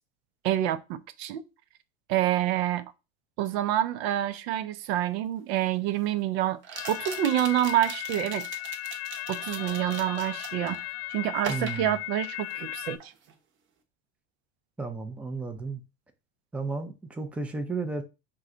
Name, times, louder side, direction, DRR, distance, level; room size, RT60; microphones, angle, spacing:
voice 1, 0.4-1.5 2.1-2.8 3.4-6.6 6.9-8.5 9.3-10.8 11.1-13.1, right 12 dB, 70° right, 0.6 m, -27 dB
sound 1, 4.9-5.0 6.6-10.8 11.4-12.7 13.0-13.3, right 6 dB, 35° right, 0.8 m, -41 dB
sound 2, 6.7-13.0, left 17 dB, 65° left, 0.4 m, -36 dB
voice 2, 11.5-11.9 14.8-15.8 16.5-18.0, right 3 dB, 5° right, 0.4 m, -33 dB
4.6 x 2.2 x 3.8 m
supercardioid pair, 115°, 33 cm